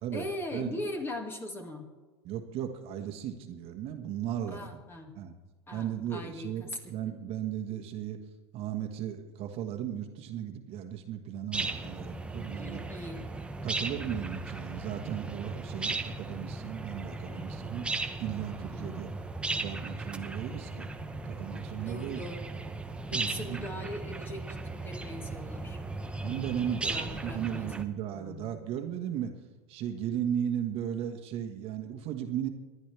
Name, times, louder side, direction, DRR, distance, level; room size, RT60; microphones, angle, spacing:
voice 1, 0.1-1.9 4.5-5.1 5.7-7.1 12.5-13.2 18.7-19.0 21.9-22.4 23.1-24.6 24.8-25.8 26.8-27.7 28.1-28.5, left 1 dB, 15° left, 3 dB, 2.1 m, -40 dB
voice 2, 2.2-4.8 5.1-5.4 5.7-8.2 8.5-12.8 13.6-17.9 18.2-19.1 19.5-20.9 21.2-22.2 23.1-23.7 26.2-29.3 29.7-32.5, right 9 dB, 45° right, 5 dB, 1.5 m, -36 dB
sound 1, 11.5-27.8, right 3 dB, 10° right, 0.9 m, -37 dB
25.5 x 10.5 x 3.4 m, 1.3 s
supercardioid pair, 120°, 14 cm